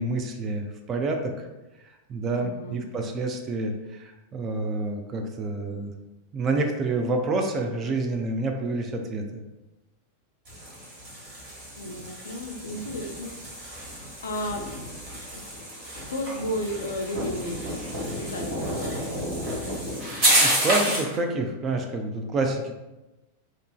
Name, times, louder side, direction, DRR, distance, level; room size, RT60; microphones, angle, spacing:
voice 1, 0.0-1.5 2.1-5.9 6.3-9.2 20.3-22.7, right 2 dB, 30° right, 4 dB, 0.3 m, -28 dB
voice 2, 2.3-2.8 11.8-13.3 14.2-14.6 16.1-17.6 18.2-19.1, left 1 dB, 70° left, 3 dB, 0.3 m, -33 dB
sound 1, 10.4-21.2, right 1 dB, 45° right, 1.3 m, -29 dB
2.8 x 2.5 x 2.2 m, 1.0 s
figure-of-eight pair, 90°, 0 cm